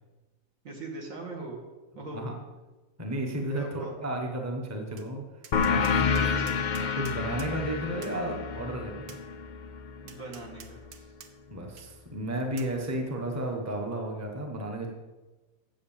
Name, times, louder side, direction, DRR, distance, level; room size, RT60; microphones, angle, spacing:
voice 1, 0.6-1.6 2.0-2.3 3.5-3.9 6.2-6.6 10.0-11.1, right 3 dB, 60° right, 1 dB, 2.2 m, -41 dB
voice 2, 3.0-6.4 6.8-9.2 11.5-14.9, right 1 dB, 10° right, 2 dB, 1.1 m, -33 dB
Tap, 5.0-5.1 5.4-7.5 8.0-8.2 9.1-9.2 10.1-11.3 11.8-11.9 12.6-12.7, right 7 dB, 75° right, 1.4 m, -48 dB
sound 1, 5.5-10.7, left 5 dB, 75° left, 0.4 m, -29 dB
7.8 x 7.8 x 7.2 m, 1.2 s
omnidirectional pair, 1.6 m